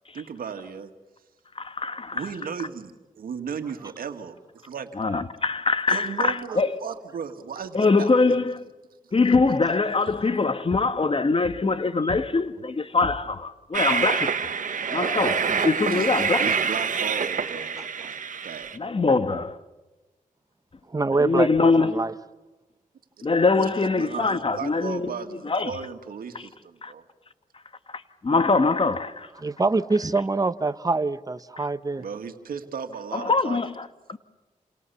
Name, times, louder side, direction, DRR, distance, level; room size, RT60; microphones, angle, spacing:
voice 1, 0.1-0.9 2.1-4.9 5.9-8.3 15.9-16.1 16.4-18.2 18.4-18.7 23.5-27.0 32.0-33.6, right 6 dB, 85° right, 2.2 m, -35 dB
voice 2, 1.6-2.3 5.0-6.8 7.7-8.6 9.1-14.4 14.9-16.5 18.7-19.6 21.2-22.0 23.2-25.7 26.8-26.9 28.2-29.3 31.6-31.7 33.1-34.2, left 3 dB, 40° left, 1.6 m, -23 dB
Train, 13.7-18.8, right 6 dB, 65° right, 1.5 m, -26 dB
voice 3, 20.9-22.1 29.4-32.0, right 3 dB, 25° right, 1.1 m, -25 dB
29.5 x 28.0 x 7.1 m
cardioid pair, 65°, 15 cm